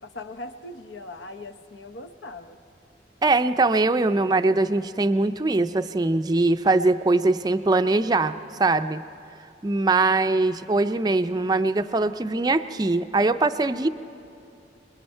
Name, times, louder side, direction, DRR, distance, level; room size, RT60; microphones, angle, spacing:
voice 1, 0.0-2.6, left 2 dB, 85° left, 9 dB, 0.9 m, -40 dB
voice 2, 3.2-8.3 8.6-9.0 9.6-13.9, right 2 dB, 20° right, 10 dB, 0.4 m, -22 dB
27.5 x 21.5 x 4.5 m, 2.6 s
head